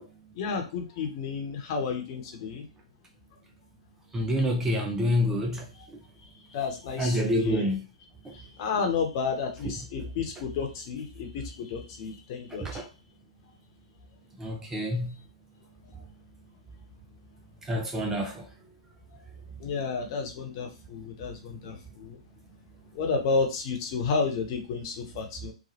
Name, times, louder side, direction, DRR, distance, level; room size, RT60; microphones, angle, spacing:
voice 1, 0.3-2.6 6.5-7.7 8.3-12.8 19.6-22.2 22.9-25.5, left 5 dB, 45° left, 0.9 m, -31 dB
voice 2, 4.1-5.6 7.0-7.8 8.3-8.4 12.6-12.8 14.4-15.1 17.7-18.4, left 1 dB, 10° right, 0.4 m, -27 dB
3.1 x 2.2 x 2.9 m
hypercardioid pair, 125°, 4 cm